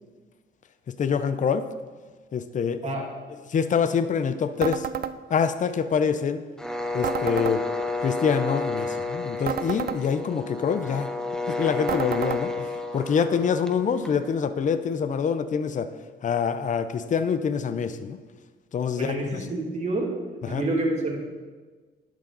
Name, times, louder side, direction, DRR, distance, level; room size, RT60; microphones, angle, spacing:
voice 1, 1.0-1.7 2.3-2.9 3.5-4.9 5.3-6.4 6.9-7.6 8.0-11.1 11.5-15.9 16.2-18.2 18.7-19.4 20.4-20.6, left 6 dB, 40° left, 11 dB, 0.5 m, -25 dB
voice 2, 2.7-3.1 18.9-20.1 20.5-21.2, right 2 dB, 35° right, -2 dB, 2.3 m, -28 dB
sound 1, 4.6-5.1 7.0-7.6 9.4-10.0 11.9-12.4, right 9 dB, 50° right, 0.4 m, -30 dB
sound 2, 6.6-14.3, left 3 dB, 5° left, 0.8 m, -31 dB
11.0 x 6.2 x 3.9 m, 1.4 s
cardioid pair, 90°, 20 cm